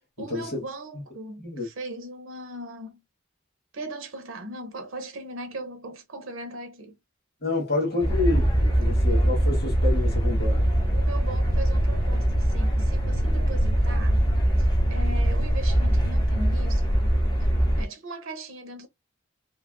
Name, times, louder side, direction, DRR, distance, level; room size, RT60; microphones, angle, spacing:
voice 1, 0.2-3.0 3.7-7.0 7.7-8.0 10.9-14.2 14.6-16.9 17.8-18.9, right 1 dB, 90° right, 0.7 m, -39 dB
voice 2, 7.4-10.6, left 3 dB, 50° left, 1.2 m, -28 dB
sound 1, 8.0-17.8, equal, 20° left, 1.1 m, -22 dB
3.2 x 2.3 x 2.2 m
head